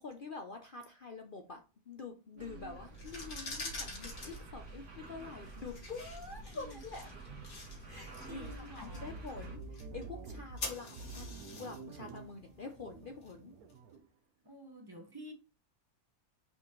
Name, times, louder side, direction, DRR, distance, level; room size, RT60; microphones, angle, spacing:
voice 1, 0.0-7.2 7.8-11.3 11.6-13.5, left 4 dB, 45° left, 0.7 m, -46 dB
voice 2, 2.3-2.8 6.5-6.8 8.3-9.2 14.4-15.3, equal, 15° right, 1.1 m, -50 dB
sound 1, 2.4-9.6, right 2 dB, 55° right, 1.7 m, -49 dB
sound 2, 2.9-13.7, left 3 dB, 85° left, 2.5 m, -48 dB
sound 3, 8.4-14.1, right 3 dB, 80° right, 1.3 m, -48 dB
6.0 x 5.1 x 3.1 m
omnidirectional pair, 1.5 m